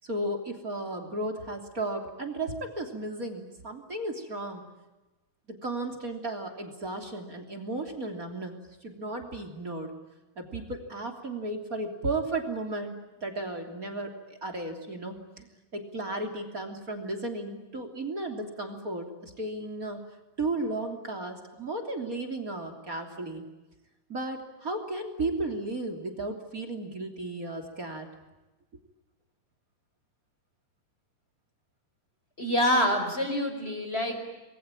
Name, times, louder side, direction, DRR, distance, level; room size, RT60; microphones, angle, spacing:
voice 1, 0.0-4.6 5.5-9.9 10.4-12.9 13.2-15.5 15.7-20.0 20.4-23.4 24.1-28.1, right 2 dB, 25° right, 3 dB, 3.3 m, -34 dB
voice 2, 32.4-34.2, left 1 dB, 15° left, 6 dB, 5.2 m, -26 dB
29.0 x 21.5 x 8.9 m, 1.1 s
omnidirectional pair, 3.9 m